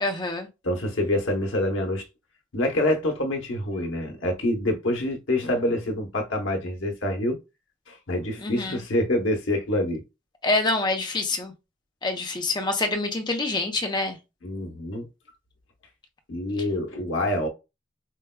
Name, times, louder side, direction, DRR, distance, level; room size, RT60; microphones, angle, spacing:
voice 1, 0.0-0.5 8.4-8.8 10.4-11.5 12.0-14.2, left 2 dB, 25° left, 0.6 m, -26 dB
voice 2, 0.6-2.0 2.5-7.4 7.9-10.0 14.4-15.1 16.3-17.5, left 1 dB, 80° left, 0.9 m, -26 dB
4.6 x 2.2 x 2.2 m
head